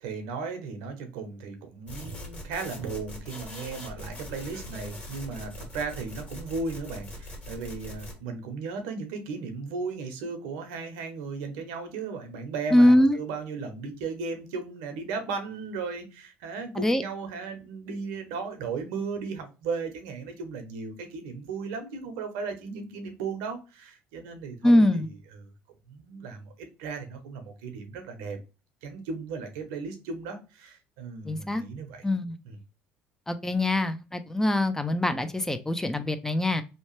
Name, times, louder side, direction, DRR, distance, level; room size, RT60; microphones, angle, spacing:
voice 1, 0.0-25.5 25.9-28.4 28.8-32.0 32.5-32.6, right 4 dB, 85° right, 0.8 m, -36 dB
sound 1, 1.9-8.1, left 1 dB, 30° left, 1.5 m, -41 dB
voice 2, 12.7-13.2 16.8-17.0 24.6-25.1 31.3-31.6 32.0-32.4 33.3-36.6, left 1 dB, 10° left, 0.4 m, -23 dB
2.8 x 2.1 x 3.1 m
supercardioid pair, 85°, 5 cm